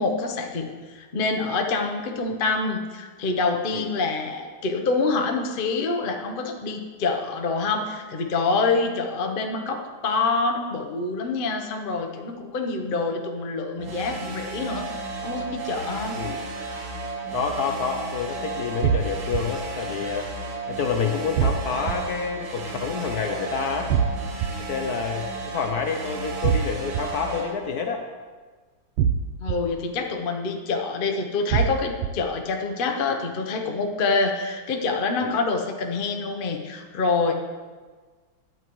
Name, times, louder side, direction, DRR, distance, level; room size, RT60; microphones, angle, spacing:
voice 1, 0.0-16.2 29.4-37.3, left 3 dB, 50° left, 3 dB, 0.6 m, -26 dB
sound 1, 13.8-27.5, right 3 dB, 70° right, 1.8 m, -33 dB
voice 2, 17.3-20.3 20.7-23.9 24.6-28.0 35.2-35.4, left 5 dB, 65° left, 4 dB, 1.0 m, -28 dB
sound 2, 18.8-19.4 21.4-21.9 23.9-24.5 26.4-27.0 29.0-29.6 31.5-32.1, right 8 dB, 90° right, 1.4 m, -22 dB
12.0 x 9.0 x 3.1 m, 1.4 s
omnidirectional pair, 2.2 m